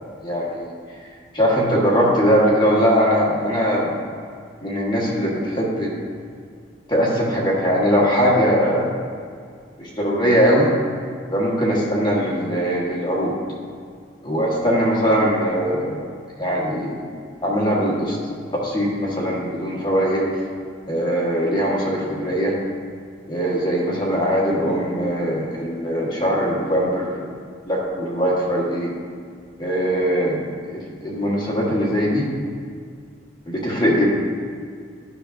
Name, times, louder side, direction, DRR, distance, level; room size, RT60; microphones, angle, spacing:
voice 1, 0.2-0.7 1.3-3.9 4.6-5.9 6.9-8.9 9.8-10.7 11.3-13.3 14.2-16.0 16.4-17.1 17.4-18.2 18.5-20.2 20.9-22.5 23.3-27.3 27.7-28.9 29.6-30.4 30.7-32.3 33.5-34.1, equal, 25° left, -4 dB, 1.2 m, -21 dB
10.0 x 5.9 x 2.5 m, 2.1 s
head